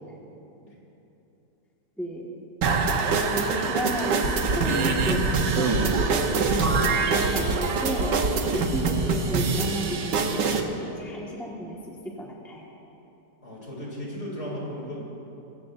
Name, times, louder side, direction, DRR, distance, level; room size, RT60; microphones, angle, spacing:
voice 1, 2.0-2.4 3.2-4.2 4.5-8.1 8.5-12.7, equal, ahead, -4 dB, 1.3 m, -33 dB
sound 1, 2.6-10.6, right 4 dB, 85° right, 1.6 m, -25 dB
sound 2, 4.2-4.6 5.0-5.3 5.7-6.1 6.5-6.8 7.2-7.6 8.0-8.3 8.7-9.0, right 3 dB, 60° right, 1.5 m, -27 dB
voice 2, 13.4-15.0, equal, 40° left, -5 dB, 3.6 m, -35 dB
24.5 x 14.5 x 2.6 m, 3.0 s
omnidirectional pair, 1.8 m